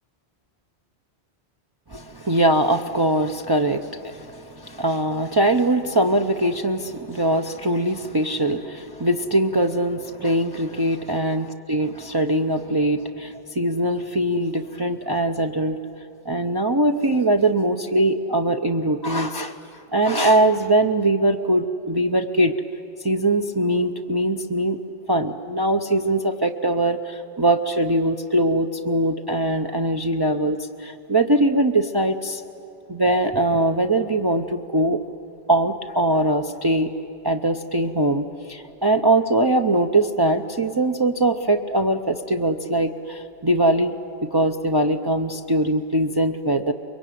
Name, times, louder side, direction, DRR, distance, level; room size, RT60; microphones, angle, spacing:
voice 1, 1.9-15.8 16.3-22.5 23.0-24.8 25.1-32.4 32.9-35.0 35.5-36.9 37.2-43.9 44.2-46.7, right 1 dB, 25° right, 3 dB, 0.6 m, -22 dB
24.0 x 22.5 x 9.3 m, 2.6 s
omnidirectional pair, 1.1 m